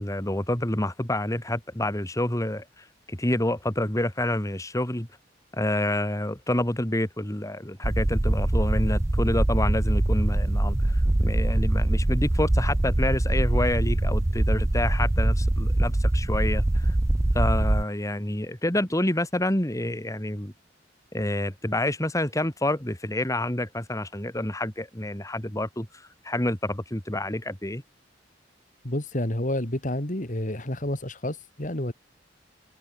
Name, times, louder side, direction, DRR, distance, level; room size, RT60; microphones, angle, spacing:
voice 1, 0.0-5.1 5.5-17.0 17.3-20.5 21.1-25.9 26.2-27.8, left 1 dB, 20° left, 2.9 m, -28 dB
sound 1, 7.8-17.8, right 1 dB, 15° right, 0.4 m, -23 dB
voice 2, 28.8-31.9, left 1 dB, 45° left, 3.4 m, -29 dB
open air
head